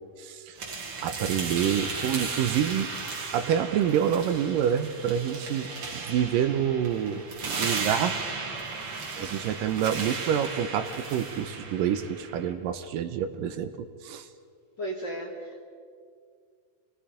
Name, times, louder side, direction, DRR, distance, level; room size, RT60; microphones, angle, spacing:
voice 1, 0.2-0.7 1.0-2.9 3.3-8.2 9.2-14.3, right 9 dB, 75° right, 9 dB, 2.3 m, -27 dB
sound 1, 0.6-12.5, right 4 dB, 45° right, 2.8 m, -35 dB
voice 2, 14.8-15.6, right 1 dB, 45° left, -1 dB, 1.6 m, -36 dB
27.0 x 19.0 x 5.0 m, 2.1 s
omnidirectional pair, 4.2 m